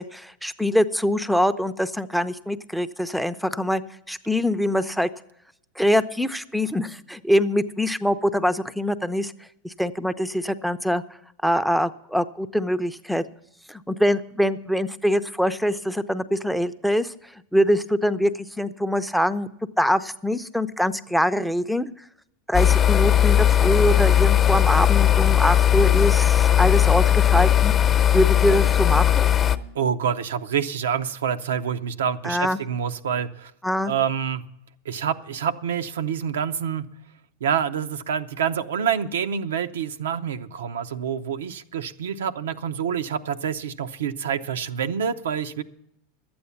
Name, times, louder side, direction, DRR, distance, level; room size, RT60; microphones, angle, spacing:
voice 1, 0.0-3.8 4.1-5.1 5.8-9.3 9.6-11.0 11.4-13.3 13.7-19.5 19.8-21.9 22.5-27.9 28.1-29.3 32.2-32.6 33.6-33.9, equal, ahead, 12 dB, 0.5 m, -23 dB
sound 1, 22.5-29.6, left 10 dB, 35° left, 0.9 m, -18 dB
voice 2, 29.7-33.5 33.8-34.4 34.8-36.9 37.4-45.6, right 8 dB, 85° right, 8 dB, 0.6 m, -27 dB
12.0 x 8.7 x 7.0 m, 0.79 s
hypercardioid pair, 110°, 0 cm